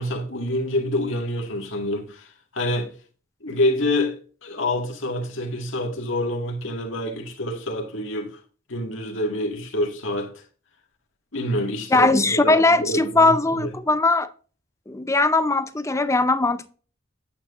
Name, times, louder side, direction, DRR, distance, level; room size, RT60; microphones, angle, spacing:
voice 1, 0.0-2.9 3.4-4.2 4.4-8.3 8.7-10.4 11.3-12.6 12.8-13.7, left 1 dB, 75° left, 1.9 m, -27 dB
voice 2, 11.9-14.3 14.9-16.7, left 2 dB, 15° left, 0.5 m, -19 dB
9.0 x 9.0 x 2.5 m
head